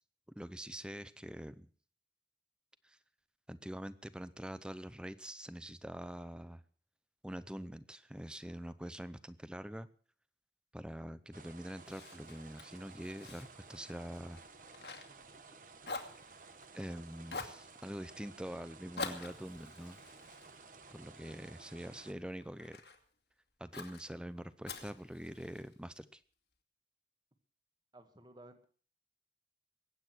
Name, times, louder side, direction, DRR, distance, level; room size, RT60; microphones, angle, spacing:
voice 1, 0.4-1.7 2.8-3.0 3.5-6.6 7.2-9.9 10.7-14.4 16.7-20.0 20.9-22.8 23.6-26.2, equal, 5° right, 15 dB, 0.7 m, -45 dB
sound 1, 11.3-22.1, right 4 dB, 50° right, 1.3 m, -55 dB
Fire, 11.8-15.6 15.8-16.9 17.3-17.6 19.0-21.4 21.9-23.0 23.7-24.0 24.6-25.7, left 3 dB, 75° left, 2.3 m, -46 dB
voice 2, 27.9-28.7, right 1 dB, 25° right, 8 dB, 1.8 m, -56 dB
22.0 x 9.0 x 6.1 m, 0.43 s
head